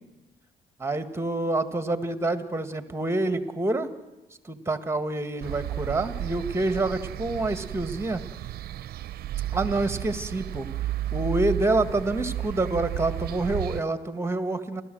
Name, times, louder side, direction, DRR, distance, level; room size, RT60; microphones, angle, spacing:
voice 1, 0.8-3.9 4.4-8.2 9.5-10.7 11.1-14.8, right 2 dB, 15° right, 10 dB, 1.8 m, -27 dB
sound 1, 5.4-13.8, right 13 dB, 65° right, 0.6 m, -33 dB
29.5 x 13.5 x 7.8 m, 1.1 s
supercardioid pair, 75°, 17 cm